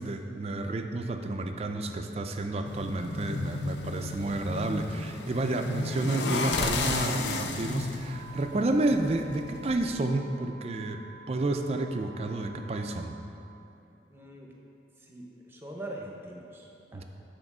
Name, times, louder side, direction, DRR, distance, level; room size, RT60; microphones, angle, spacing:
voice 1, 0.0-11.0 11.3-13.2 16.9-17.0, right 2 dB, 35° right, 6 dB, 0.4 m, -30 dB
sound 1, 2.7-9.9, left 3 dB, 75° left, 0.5 m, -33 dB
sound 2, 8.0-13.2, right 5 dB, 25° left, 1.2 m, -50 dB
voice 2, 14.1-14.5 15.0-17.0, right 1 dB, 10° right, -1 dB, 0.8 m, -43 dB
7.8 x 4.4 x 6.0 m, 2.8 s
head